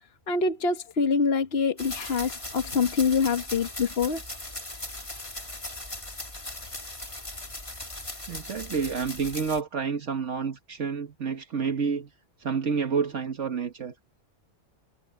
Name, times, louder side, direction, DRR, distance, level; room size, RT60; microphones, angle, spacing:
voice 1, 0.3-4.2, left 5 dB, 55° left, 1.5 m, -25 dB
sound 1, 1.8-9.6, left 1 dB, 25° left, 2.7 m, -38 dB
voice 2, 8.3-12.1 12.4-13.9, right 5 dB, 75° right, 1.8 m, -29 dB
omnidirectional pair, 1.3 m